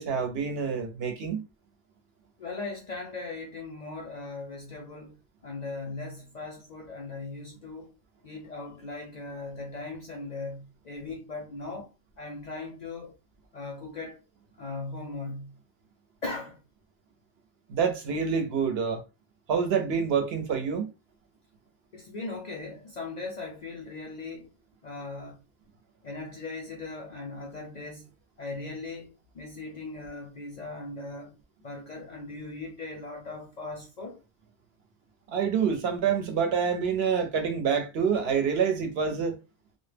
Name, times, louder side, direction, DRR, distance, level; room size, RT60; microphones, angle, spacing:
voice 1, 0.0-1.4 17.7-19.0 19.5-20.9 35.3-39.3, right 6 dB, 65° right, 0.8 m, -27 dB
voice 2, 2.4-5.2 5.4-7.9 8.2-11.9 12.2-13.2 13.5-14.2 14.6-15.5 16.2-16.6 21.9-24.5 24.8-25.4 26.0-28.1 28.4-31.3 31.6-34.2, left 3 dB, 55° left, 0.5 m, -39 dB
2.2 x 2.0 x 3.2 m
omnidirectional pair, 1.2 m